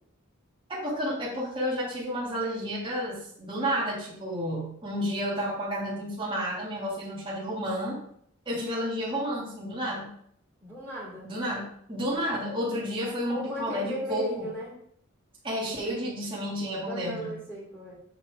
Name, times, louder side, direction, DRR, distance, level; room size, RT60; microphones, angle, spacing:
voice 1, 0.7-8.0 8.5-10.1 11.2-14.5 15.4-17.4, equal, 25° right, -5 dB, 1.8 m, -31 dB
voice 2, 10.6-11.3 13.3-14.7 16.9-17.9, equal, 10° left, -8 dB, 2.6 m, -36 dB
6.9 x 4.3 x 4.6 m, 0.66 s
head